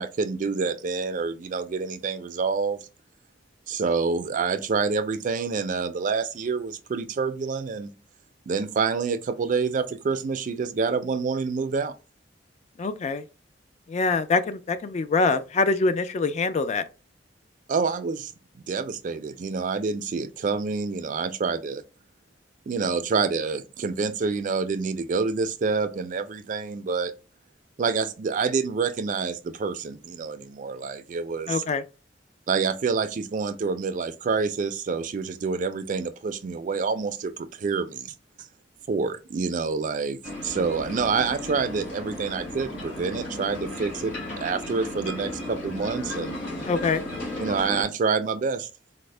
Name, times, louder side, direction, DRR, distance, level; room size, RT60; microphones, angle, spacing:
voice 1, 0.0-2.8 3.7-7.9 8.5-11.9 17.7-18.3 18.7-21.8 22.7-27.1 27.8-31.6 32.5-38.1 38.9-46.4 47.4-48.7, right 5 dB, 45° right, 0.4 m, -27 dB
voice 2, 12.8-13.2 13.9-16.8 31.5-31.8 46.7-47.0, left 3 dB, 40° left, 0.3 m, -24 dB
sound 1, 40.2-47.8, left 1 dB, 70° left, 2.0 m, -35 dB
4.1 x 2.0 x 3.2 m
head